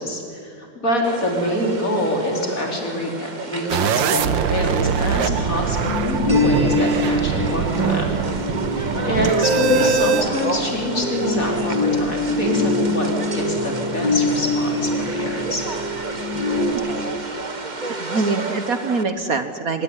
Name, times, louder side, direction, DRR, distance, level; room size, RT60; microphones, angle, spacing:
voice 1, 0.0-8.2 8.7-15.7, left 1 dB, 45° left, 1 dB, 4.8 m, -25 dB
sound 1, 1.0-19.0, right 2 dB, 25° right, 1.6 m, -32 dB
sound 2, 3.7-10.2, right 8 dB, 80° right, 1.7 m, -23 dB
sound 3, 4.5-16.7, left 2 dB, 65° left, 7.5 m, -25 dB
voice 2, 16.7-17.5 17.9-19.8, right 4 dB, 50° right, 9 dB, 1.5 m, -25 dB
25.0 x 21.5 x 9.9 m, 2.5 s
omnidirectional pair, 2.0 m